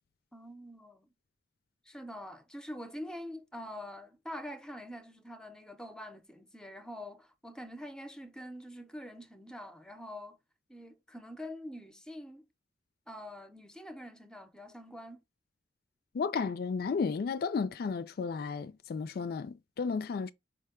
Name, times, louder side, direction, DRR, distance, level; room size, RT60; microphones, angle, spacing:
voice 1, 0.3-1.1 1.9-10.4 10.7-12.5 13.1-15.2, equal, 5° left, 0.6 m, -45 dB
voice 2, 16.1-20.3, left 5 dB, 60° left, 0.3 m, -33 dB
5.0 x 2.2 x 4.8 m
head